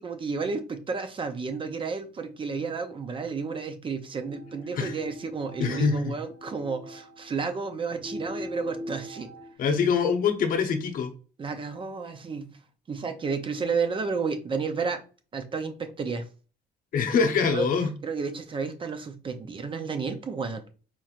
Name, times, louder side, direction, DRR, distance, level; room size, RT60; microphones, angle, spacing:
voice 1, 0.0-9.3 11.4-12.5 12.9-15.0 15.3-16.2 17.5-17.7 18.0-20.6, right 5 dB, 30° right, 8 dB, 0.6 m, -31 dB
sound 1, 4.3-9.5, equal, 60° right, 1.3 m, -41 dB
voice 2, 5.6-6.1 9.6-11.1 16.9-17.9, left 5 dB, 55° left, 6 dB, 0.8 m, -24 dB
4.4 x 3.0 x 2.4 m, 0.37 s
cardioid pair, 110°, 17 cm